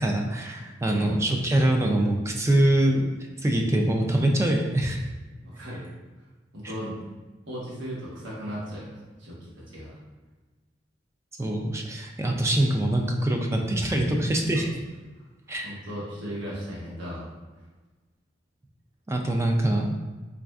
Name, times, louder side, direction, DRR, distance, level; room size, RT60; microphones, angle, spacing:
voice 1, 0.0-3.0 3.4-5.0 11.4-14.7 15.5-15.7 19.1-19.9, right 1 dB, 15° right, 2 dB, 0.3 m, -24 dB
voice 2, 0.8-1.2 5.4-5.8 6.5-7.0 7.5-9.9 14.5-14.7 15.6-17.3, equal, 80° right, -7 dB, 1.2 m, -36 dB
4.1 x 2.5 x 2.3 m, 1.2 s
head